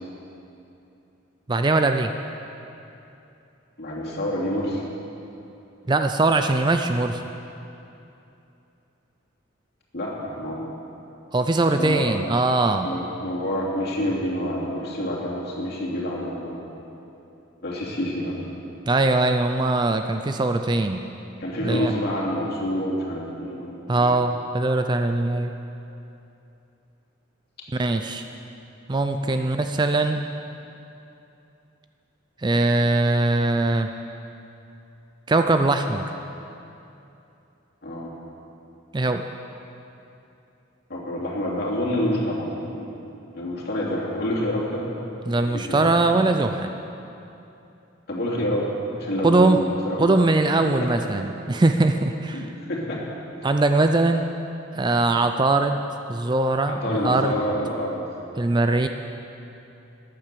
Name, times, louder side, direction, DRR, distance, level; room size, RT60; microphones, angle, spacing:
voice 1, 1.5-2.1 5.9-7.2 11.3-12.9 18.9-21.0 21.6-21.9 23.9-25.5 27.8-28.2 28.9-30.3 32.4-33.9 35.3-36.1 38.9-39.2 45.3-46.7 49.2-49.6 50.0-52.4 53.4-54.2 54.8-55.8 56.1-57.3 58.4-58.9, right 2 dB, 20° right, 6 dB, 0.4 m, -21 dB
voice 2, 3.8-4.8 9.9-10.7 11.8-12.1 12.8-16.8 17.6-18.3 21.4-24.2 29.3-29.4 37.8-38.1 40.9-42.9 43.3-44.9 45.4-45.9 48.1-48.7 48.9-50.2 50.6-50.9 52.3-53.0 56.7-58.0, left 1 dB, 50° left, -5 dB, 2.9 m, -28 dB
13.5 x 10.0 x 6.8 m, 2.8 s
head